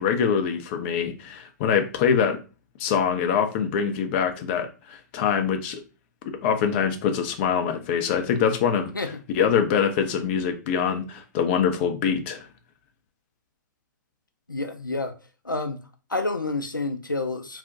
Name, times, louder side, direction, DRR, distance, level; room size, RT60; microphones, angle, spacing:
voice 1, 0.0-2.4 2.8-5.8 6.2-8.9 9.3-12.5, left 7 dB, 35° left, 0.5 m, -24 dB
voice 2, 14.5-15.2 15.4-15.8 16.1-17.6, left 2 dB, 90° left, 0.5 m, -28 dB
2.4 x 2.2 x 3.7 m
figure-of-eight pair, 120°, 10 cm